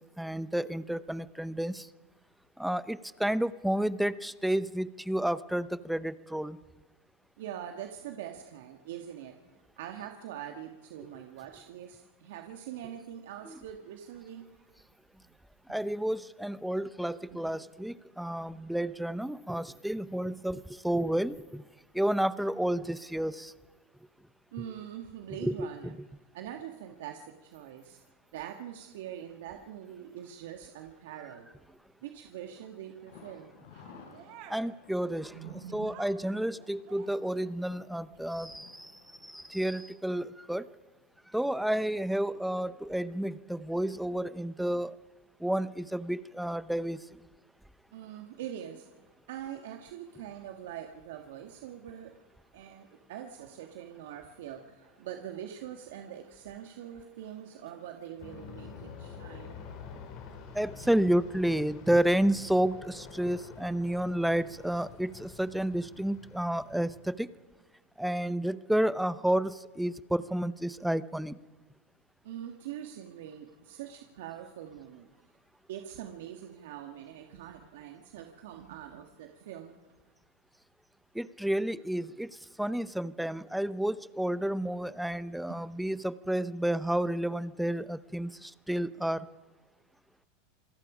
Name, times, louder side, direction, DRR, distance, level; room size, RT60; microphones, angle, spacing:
voice 1, 0.0-1.9 2.6-6.6 15.7-21.6 21.9-23.5 25.4-25.9 34.5-35.4 35.7-40.7 41.3-45.0 45.4-47.1 60.5-67.3 68.0-71.4 81.1-89.3, right 1 dB, ahead, 15 dB, 0.7 m, -31 dB
voice 2, 7.4-9.4 9.8-14.5 15.8-15.9 17.3-17.5 17.8-17.9 24.5-26.0 26.3-28.0 28.3-31.5 32.0-33.9 35.3-36.0 47.9-48.9 49.3-52.2 52.5-59.8 60.8-60.9 72.2-75.1 75.7-79.8 84.6-84.8 85.5-85.6, right 10 dB, 75° right, 4 dB, 1.8 m, -43 dB
Thunder, 33.1-40.8 41.1-41.2 41.6-41.7, left 6 dB, 75° left, 6.0 m, -56 dB
sound 1, 33.7-34.8 35.7-37.6 38.1-38.3, right 10 dB, 55° right, 2.9 m, -53 dB
Aircraft, 58.2-67.2, left 6 dB, 50° left, 4.7 m, -48 dB
27.0 x 19.5 x 5.1 m, 1.2 s
supercardioid pair, 125°, 0 cm